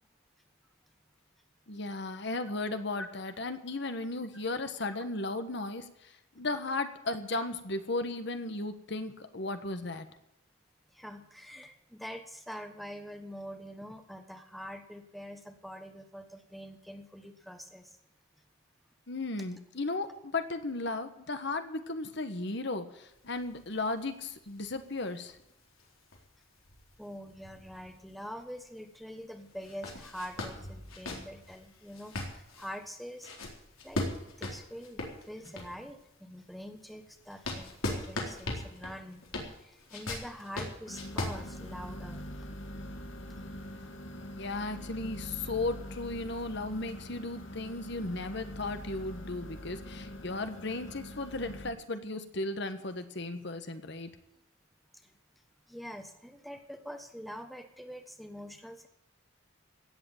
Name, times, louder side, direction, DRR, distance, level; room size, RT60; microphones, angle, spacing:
voice 1, 1.7-10.1 19.1-25.4 44.4-54.1, left 2 dB, 60° left, 9 dB, 1.3 m, -35 dB
voice 2, 10.9-18.0 27.0-33.3 33.8-34.0 34.4-39.2 39.6-42.5 55.0-55.1 55.7-58.9, equal, ahead, 6 dB, 1.2 m, -45 dB
sound 1, 23.1-28.4 28.8-28.9 29.5-35.9 36.4-42.2, left 2 dB, 90° left, 4.0 m, -40 dB
sound 2, 40.9-51.7, equal, 75° left, 2.0 m, -44 dB
17.0 x 7.9 x 9.0 m, 0.85 s
head